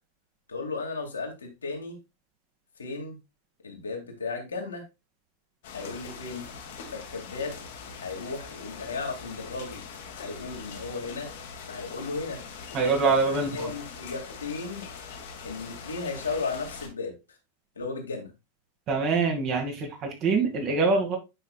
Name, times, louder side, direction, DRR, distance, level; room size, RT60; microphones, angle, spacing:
voice 1, 0.5-2.0 2.8-3.2 3.6-4.8 5.7-6.5 6.9-7.6 8.0-9.8 10.2-11.3 11.7-12.4 13.3-14.8 15.4-17.4 17.8-18.3, left 4 dB, 70° left, 2.3 m, -35 dB
sound 1, 5.6-16.9, left 5 dB, 55° left, 1.6 m, -42 dB
voice 2, 12.7-13.7 18.9-21.2, right 4 dB, 35° right, 2.1 m, -24 dB
9.0 x 5.7 x 2.4 m
figure-of-eight pair, 90°, 0 cm